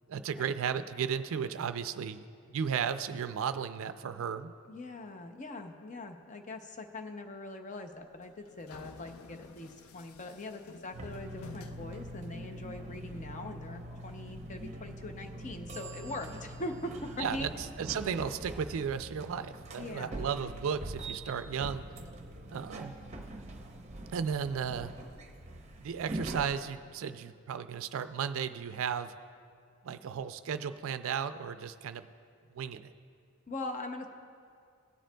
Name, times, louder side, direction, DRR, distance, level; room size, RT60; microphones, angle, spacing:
voice 1, 0.1-4.5 17.2-17.5 17.8-21.8 22.5-22.9 24.1-24.9 25.8-29.1 29.8-32.1 32.5-32.9, right 7 dB, 65° right, 11 dB, 0.3 m, -34 dB
voice 2, 4.7-17.5 19.8-20.3 33.5-34.1, left 2 dB, 35° left, 5 dB, 0.6 m, -42 dB
sound 1, 7.9-13.0, left 4 dB, 80° left, 0.4 m, -53 dB
sound 2, 10.9-26.4, right 1 dB, 30° right, 0.7 m, -43 dB
18.0 x 7.6 x 2.2 m, 2.3 s
head